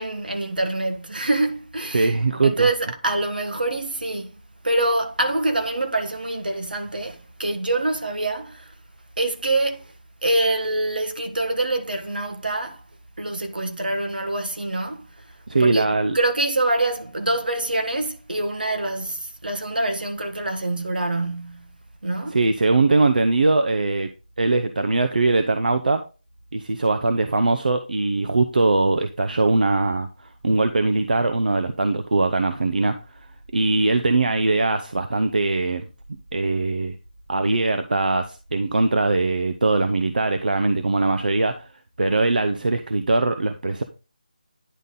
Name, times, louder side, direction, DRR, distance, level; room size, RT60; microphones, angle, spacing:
voice 1, 0.0-2.1 2.4-4.3 4.6-8.7 9.2-9.9 10.2-12.8 13.2-15.2 15.6-15.9 16.1-21.7 22.0-22.5, right 2 dB, 85° right, 1.4 m, -25 dB
voice 2, 1.9-2.7 15.5-16.2 22.3-24.1 24.4-26.0 26.5-32.9 33.5-35.8 36.3-36.9 37.3-41.5 42.0-43.8, right 3 dB, 70° right, 0.7 m, -21 dB
10.0 x 4.0 x 3.7 m
figure-of-eight pair, 170°, 5 cm